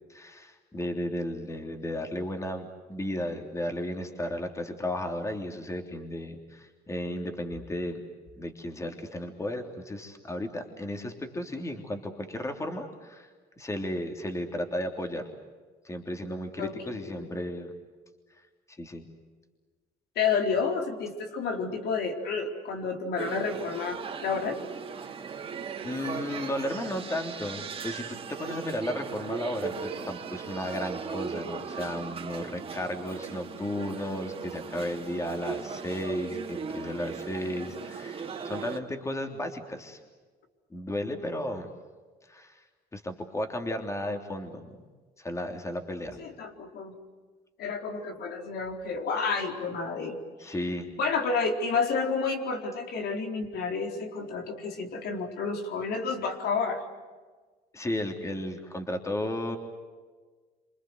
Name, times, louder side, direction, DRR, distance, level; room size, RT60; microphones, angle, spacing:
voice 1, 0.1-8.0 8.4-15.2 15.8-17.7 18.3-18.4 18.7-19.0 25.8-40.0 40.7-41.7 42.2-42.6 42.9-44.8 45.2-46.2 50.4-50.9 57.7-59.6, left 1 dB, 15° left, 4 dB, 3.3 m, -34 dB
voice 2, 16.6-17.3 20.2-24.6 46.2-46.9 47.6-50.5 51.0-56.8, left 5 dB, 70° left, 3 dB, 4.4 m, -30 dB
sound 1, 23.2-38.8, right 6 dB, 35° right, 3.3 m, -38 dB
27.5 x 26.5 x 8.0 m, 1.4 s
cardioid pair, 110°, 17 cm